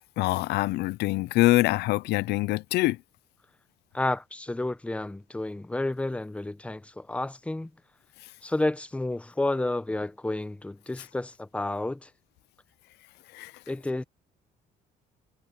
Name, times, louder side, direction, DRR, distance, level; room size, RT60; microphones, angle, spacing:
voice 1, 0.2-3.0 13.3-13.5, left 19 dB, 80° left, 0.6 m, -24 dB
voice 2, 3.9-7.7 8.4-12.1 13.7-14.0, left 2 dB, 5° left, 0.9 m, -30 dB
cardioid pair, 110°, 17 cm